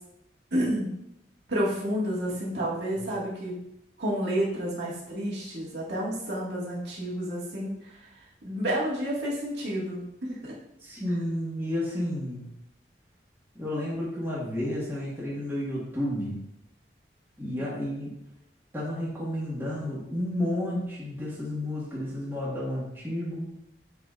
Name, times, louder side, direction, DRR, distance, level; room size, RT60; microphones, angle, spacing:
voice 1, 0.5-1.0 1.5-3.5 4.0-8.1 8.4-10.0 10.3-10.6, equal, 80° right, -6 dB, 1.9 m, -30 dB
voice 2, 10.8-12.5 13.5-16.4 17.4-18.1 18.7-23.6, left 1 dB, 15° right, -7 dB, 1.6 m, -31 dB
9.7 x 4.0 x 2.5 m, 0.81 s
head